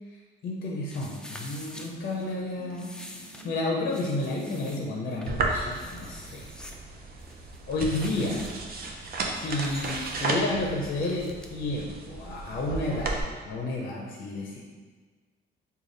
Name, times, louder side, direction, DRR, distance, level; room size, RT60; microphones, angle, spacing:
voice 1, 0.4-2.9 3.4-6.5 7.7-8.5 9.3-13.1 13.5-14.6, left 2 dB, 50° left, -1 dB, 0.6 m, -31 dB
sound 1, 0.9-11.5, left 1 dB, 5° left, 0.3 m, -47 dB
sound 2, 1.7-5.0, right 2 dB, 15° right, 1.0 m, -50 dB
sound 3, 5.3-13.2, right 3 dB, 50° right, 0.5 m, -34 dB
3.3 x 2.3 x 3.8 m, 1.4 s
cardioid pair, 90°, 20 cm